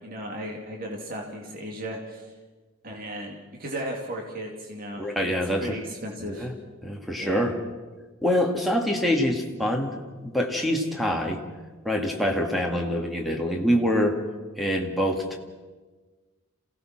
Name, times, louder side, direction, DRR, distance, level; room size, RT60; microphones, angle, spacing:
voice 1, 0.0-2.2 2.8-5.1 5.6-6.5 7.2-7.5, equal, 45° right, 0 dB, 2.8 m, -35 dB
voice 2, 5.0-5.8 6.2-6.5 6.8-7.6 8.2-9.9 10.2-11.4 11.8-14.2 14.6-15.4, equal, ahead, 1 dB, 2.1 m, -25 dB
27.5 x 17.0 x 6.0 m, 1.3 s
head